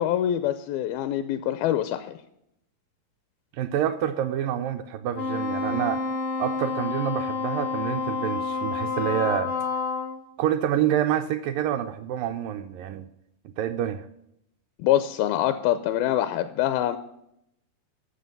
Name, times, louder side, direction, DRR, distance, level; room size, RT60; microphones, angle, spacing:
voice 1, 0.0-2.2 14.8-17.0, left 12 dB, 80° left, 10 dB, 2.4 m, -25 dB
voice 2, 3.5-6.0 6.4-9.5 10.4-13.1 13.5-14.1, right 11 dB, 80° right, 8 dB, 2.0 m, -27 dB
Wind instrument woodwind instrument, 5.1-10.2, left 4 dB, 60° left, 0.8 m, -29 dB
12.5 x 7.0 x 5.3 m, 0.78 s
omnidirectional pair, 4.5 m